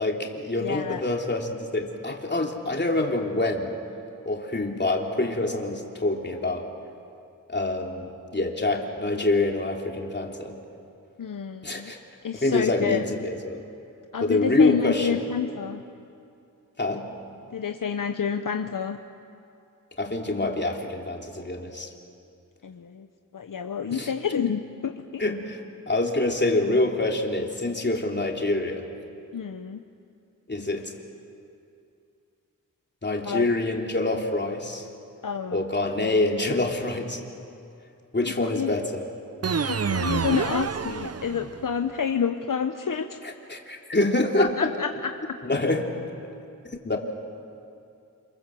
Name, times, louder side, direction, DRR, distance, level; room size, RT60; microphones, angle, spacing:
voice 1, 0.0-3.7 4.2-6.7 7.5-10.6 11.6-12.0 12.3-13.6 14.2-15.2 16.8-17.1 20.0-21.9 23.9-24.1 25.2-28.9 30.5-30.9 33.0-34.9 35.5-37.2 38.1-39.1 43.5-44.7 45.4-45.9 46.8-47.0, left 2 dB, 30° left, 1 dB, 3.2 m, -26 dB
voice 2, 0.6-1.0 11.2-11.9 12.2-13.0 14.1-15.8 17.5-19.0 22.6-23.1 23.3-25.2 29.3-29.8 33.2-33.5 35.2-35.6 36.0-36.1 38.4-38.7 39.7-43.2 44.4-45.1, left 7 dB, 65° left, 7 dB, 1.0 m, -29 dB
sound 1, 39.4-41.7, right 6 dB, 45° right, 0.8 m, -28 dB
28.0 x 27.5 x 7.7 m, 2.6 s
wide cardioid pair, 80°, 34 cm